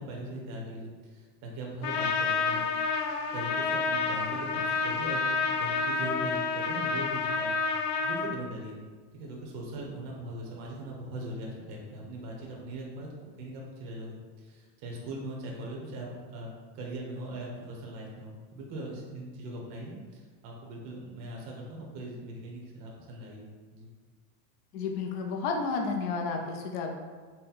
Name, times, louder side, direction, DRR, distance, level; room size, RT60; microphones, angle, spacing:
voice 1, 0.0-2.9 3.3-8.8 9.1-16.5 16.7-23.9, right 1 dB, 40° right, -2 dB, 0.7 m, -40 dB
Trumpet, 1.8-8.3, left 4 dB, 80° left, 0.7 m, -29 dB
voice 2, 24.7-27.0, left 4 dB, 45° left, 1 dB, 0.5 m, -31 dB
4.1 x 2.0 x 4.0 m, 1.5 s
supercardioid pair, 160°, 48 cm